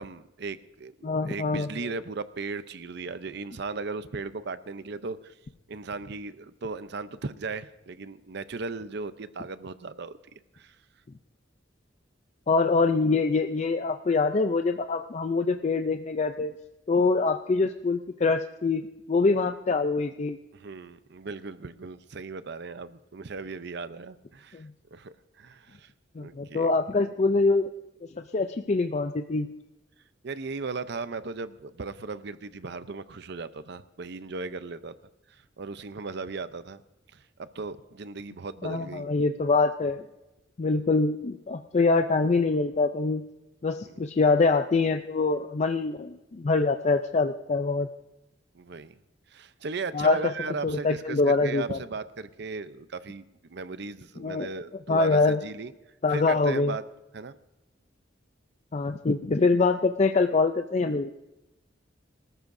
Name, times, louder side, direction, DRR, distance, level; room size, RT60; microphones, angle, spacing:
voice 1, 0.0-5.3 5.7-10.2 10.5-10.8 20.5-24.6 24.9-25.9 26.2-26.7 30.2-34.9 35.6-36.8 37.1-39.1 43.8-44.0 48.5-49.0 49.3-55.7 56.1-56.8 57.1-57.3, right 4 dB, 60° right, 13 dB, 0.6 m, -37 dB
voice 2, 1.0-1.7 12.5-16.5 16.9-20.4 24.5-24.7 26.2-27.7 28.3-29.5 38.6-40.0 40.6-43.2 43.6-47.9 49.9-50.3 50.6-51.8 54.2-54.5 54.9-55.4 56.0-56.8 58.7-61.1, left 3 dB, 35° left, 7 dB, 0.4 m, -24 dB
24.0 x 13.5 x 2.6 m, 0.97 s
head